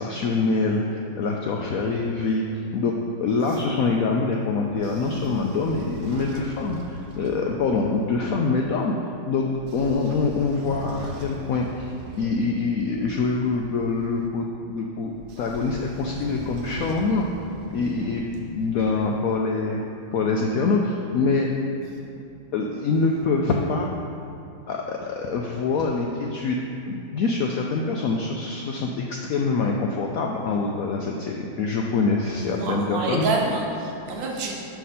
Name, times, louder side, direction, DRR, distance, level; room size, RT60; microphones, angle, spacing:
voice 1, 0.0-2.4 2.7-2.9 3.2-8.9 9.3-9.4 9.7-15.1 15.4-17.3 17.7-19.8 20.1-21.5 22.5-23.9 24.7-26.6 26.9-33.3, left 4 dB, 75° left, 0 dB, 0.8 m, -25 dB
voice 2, 3.4-3.8 21.8-22.0 32.5-34.6, right 3 dB, 85° right, -1 dB, 1.7 m, -28 dB
Train / Sliding door, 4.6-8.6 9.4-14.3 15.1-19.0, right 3 dB, 70° right, 1.1 m, -41 dB
5.9 x 5.8 x 5.6 m, 2.6 s
omnidirectional pair, 2.0 m